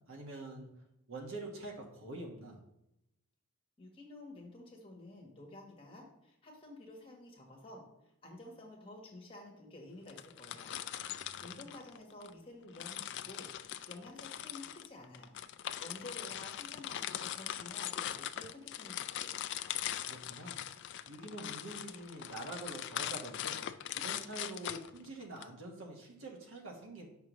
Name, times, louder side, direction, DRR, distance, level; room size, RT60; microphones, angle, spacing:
voice 1, 0.1-0.7 1.1-2.6 10.9-11.7 19.7-20.6 21.1-23.6 23.9-27.1, right 2 dB, 60° right, -1 dB, 1.4 m, -46 dB
voice 2, 3.8-10.7 11.4-13.5 13.9-19.4, left 2 dB, 25° left, -1 dB, 1.4 m, -51 dB
sound 1, 10.1-12.3 12.8-25.4, left 11 dB, 50° left, 0.3 m, -41 dB
7.5 x 5.9 x 3.1 m, 0.84 s
head